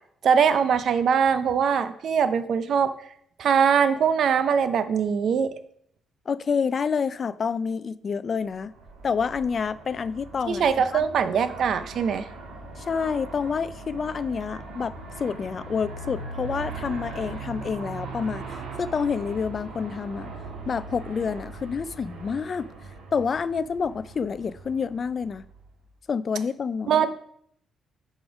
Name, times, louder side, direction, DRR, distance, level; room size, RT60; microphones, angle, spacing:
voice 1, 0.2-2.9 3.4-5.5 10.5-12.3 26.9-27.2, right 7 dB, 65° right, 0.6 m, -22 dB
voice 2, 6.3-8.7 9.0-10.7 10.9-11.0 12.8-20.3 20.7-22.7 23.1-25.5 26.1-27.0, left 6 dB, 45° left, 0.4 m, -28 dB
Aircraft, 8.6-25.8, right 3 dB, 80° right, 1.6 m, -40 dB
6.0 x 5.1 x 5.0 m
cardioid pair, 90°, 0 cm